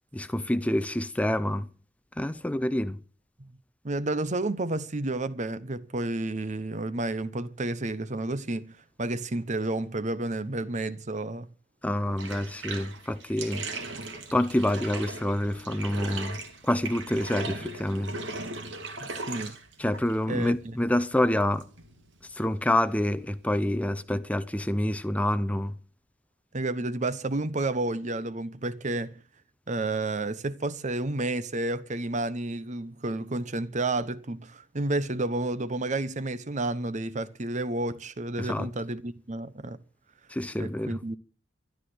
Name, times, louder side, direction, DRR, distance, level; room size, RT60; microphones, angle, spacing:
voice 1, 0.1-1.7 2.2-3.0 11.8-13.6 14.3-16.4 16.6-18.1 19.8-21.6 22.3-25.7 38.4-38.7 40.3-41.0, left 1 dB, 5° left, 0.6 m, -27 dB
voice 2, 3.8-11.5 19.0-19.6 20.3-20.8 26.5-29.2 29.7-39.8 40.6-41.2, right 2 dB, 40° right, 0.9 m, -31 dB
Bathtub (filling or washing), 12.1-23.8, right 3 dB, 70° right, 2.8 m, -39 dB
13.0 x 12.0 x 7.9 m
head